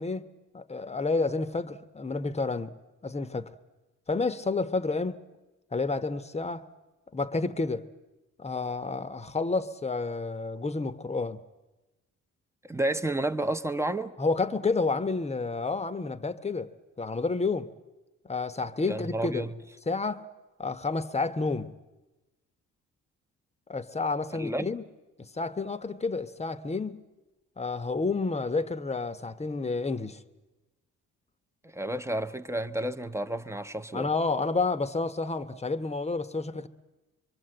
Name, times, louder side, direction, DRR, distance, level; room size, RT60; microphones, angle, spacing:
voice 1, 0.0-2.7 3.0-3.5 4.1-5.2 5.7-6.6 7.1-7.9 8.4-11.4 14.2-16.7 17.0-17.7 18.2-19.5 19.9-20.3 20.6-21.7 23.7-24.8 25.2-27.0 27.6-30.2 33.9-36.7, left 3 dB, 20° left, 1.1 m, -30 dB
voice 2, 12.6-14.1 18.9-19.5 24.3-24.6 31.7-34.1, right 1 dB, 10° right, 1.0 m, -31 dB
25.0 x 24.0 x 7.9 m
cardioid pair, 90°, 30 cm